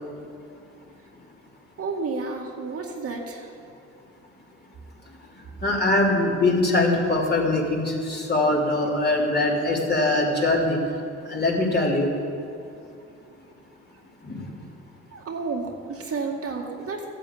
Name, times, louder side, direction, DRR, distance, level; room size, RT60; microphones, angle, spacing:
voice 1, 1.8-3.5 15.1-17.1, right 4 dB, 50° right, 0 dB, 2.1 m, -31 dB
voice 2, 5.6-10.8 11.3-12.1 14.2-14.5, left 2 dB, 35° left, -3 dB, 3.5 m, -22 dB
13.5 x 8.9 x 8.7 m, 2.6 s
cardioid pair, 90°, 30 cm